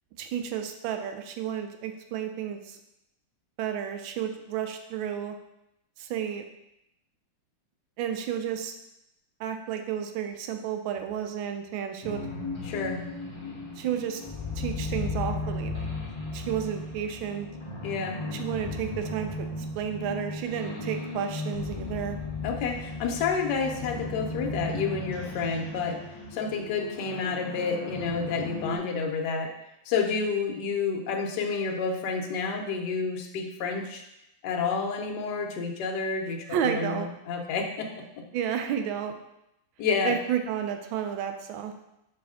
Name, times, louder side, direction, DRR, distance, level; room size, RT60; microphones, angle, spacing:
voice 1, 0.2-2.8 3.6-5.4 6.0-6.4 8.0-8.7 9.4-12.3 13.8-14.2 14.6-15.9 16.3-17.5 18.3-19.5 19.7-22.2 36.5-37.1 38.3-39.1 40.0-41.7, right 9 dB, 80° right, 6 dB, 1.4 m, -31 dB
sound 1, 12.0-28.8, left 2 dB, 40° left, 0.4 m, -36 dB
voice 2, 12.6-13.0 17.8-18.2 22.4-26.0 26.3-29.5 29.9-34.0 34.4-37.9 39.8-40.1, left 5 dB, 65° left, 2 dB, 1.3 m, -29 dB
5.6 x 5.1 x 3.6 m, 0.85 s
omnidirectional pair, 2.2 m